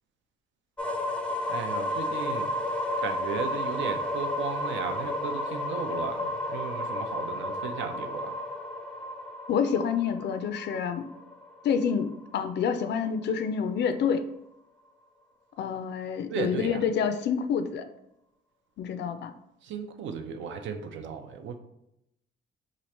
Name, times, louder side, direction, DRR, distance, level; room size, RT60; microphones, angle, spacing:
sound 1, 0.8-12.6, left 1 dB, 5° left, 0.5 m, -32 dB
voice 1, 1.5-2.5 3.0-8.3 16.3-16.8 19.6-21.6, right 6 dB, 75° right, 7 dB, 0.5 m, -35 dB
voice 2, 9.5-11.1 11.6-14.3 15.6-17.8 18.8-19.3, left 7 dB, 60° left, 9 dB, 0.4 m, -28 dB
3.0 x 2.4 x 4.2 m, 0.83 s
cardioid pair, 90°, 20 cm